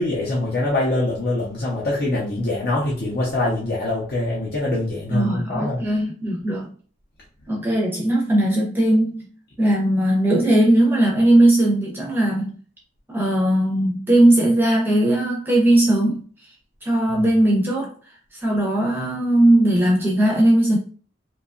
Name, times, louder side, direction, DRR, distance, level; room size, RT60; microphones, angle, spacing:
voice 1, 0.0-5.8 17.1-17.2, left 2 dB, 50° left, 0.6 m, -24 dB
voice 2, 5.1-6.7 7.5-9.3 9.6-12.6 13.1-16.3 16.8-17.9 18.3-20.8, right 1 dB, 10° right, 0.5 m, -18 dB
2.8 x 2.3 x 2.4 m
head